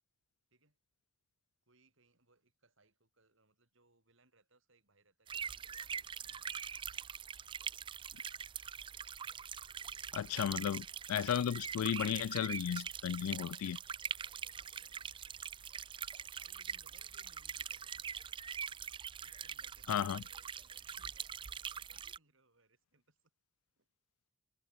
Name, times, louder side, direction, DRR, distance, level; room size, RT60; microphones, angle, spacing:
voice 1, 1.6-6.6 13.2-14.0 14.3-15.2 16.3-18.1 19.0-23.2 23.8-23.9, right 3 dB, 60° right, 4.2 m, -71 dB
sound 1, 5.3-22.2, right 7 dB, 25° right, 0.4 m, -43 dB
voice 2, 10.1-13.8 19.9-20.2, left 9 dB, 85° left, 0.3 m, -34 dB
head